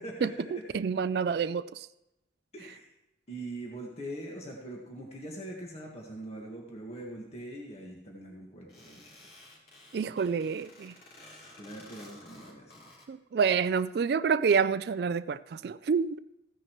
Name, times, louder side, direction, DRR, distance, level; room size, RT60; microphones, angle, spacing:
voice 1, 0.2-1.9 9.9-10.9 13.1-16.2, right 6 dB, 65° right, 0.3 m, -28 dB
voice 2, 2.5-2.9 3.3-9.1 11.6-12.9, right 1 dB, 35° left, 1.7 m, -42 dB
sound 1, 8.7-13.1, left 1 dB, 60° left, 3.7 m, -53 dB
15.0 x 10.0 x 3.1 m
head